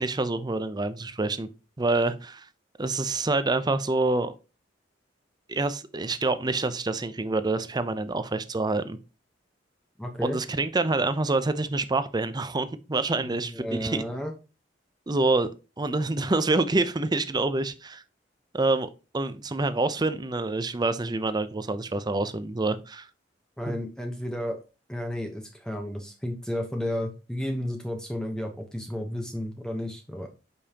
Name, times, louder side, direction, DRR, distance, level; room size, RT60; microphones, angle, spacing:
voice 1, 0.0-1.5 1.8-2.5 2.8-4.3 5.5-9.0 10.2-14.0 15.1-15.5 15.8-18.0 18.5-23.1 23.7-23.8, right 2 dB, 25° right, 0.6 m, -27 dB
voice 2, 10.0-10.4 13.2-14.3 23.6-24.6 24.9-30.3, left 1 dB, 5° left, 0.9 m, -32 dB
8.5 x 5.4 x 2.9 m
head